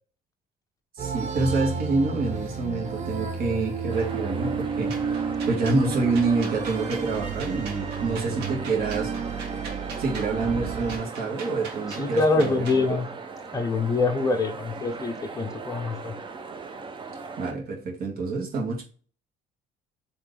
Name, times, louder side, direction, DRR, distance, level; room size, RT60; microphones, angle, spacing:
sound 1, 1.0-11.0, right 5 dB, 45° right, 1.1 m, -31 dB
voice 1, 1.0-9.4 10.0-13.0 17.4-18.8, right 3 dB, 60° right, 1.9 m, -27 dB
sound 2, 3.9-17.5, right 4 dB, 30° right, 0.8 m, -39 dB
sound 3, 4.9-12.8, right 4 dB, 80° right, 1.7 m, -42 dB
voice 2, 12.0-13.1 13.5-16.1, left 3 dB, 20° left, 0.9 m, -25 dB
4.2 x 3.3 x 3.4 m
cardioid pair, 110°, 17 cm